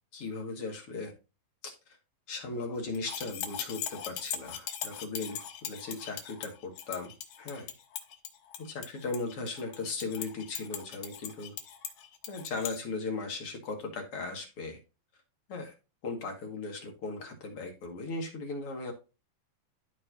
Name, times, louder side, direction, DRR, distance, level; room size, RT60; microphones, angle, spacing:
voice 1, 0.1-1.1 1.6-2.0 2.3-7.7 8.6-11.5 12.3-14.8 15.5-15.7 16.0-18.9, left 3 dB, 45° left, 2 dB, 2.5 m, -37 dB
sound 1, 3.0-12.8, left 9 dB, 80° left, 2.8 m, -40 dB
14.0 x 4.7 x 2.7 m, 0.29 s
omnidirectional pair, 3.9 m